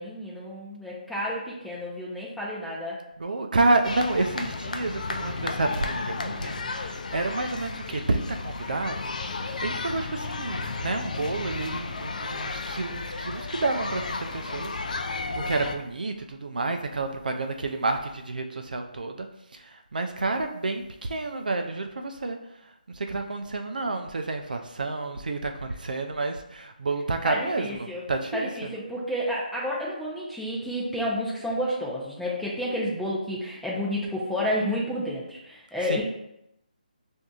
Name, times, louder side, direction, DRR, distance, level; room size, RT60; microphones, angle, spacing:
voice 1, 0.0-3.0 27.2-28.1 28.3-36.0, equal, ahead, -6 dB, 0.6 m, -30 dB
voice 2, 3.2-19.3 19.9-22.4 23.0-28.7 35.9-36.0, right 3 dB, 65° right, 5 dB, 0.5 m, -29 dB
sound 1, 3.8-15.8, left 3 dB, 55° left, 0.4 m, -33 dB
6.0 x 2.7 x 2.3 m, 0.83 s
figure-of-eight pair, 155°, 5 cm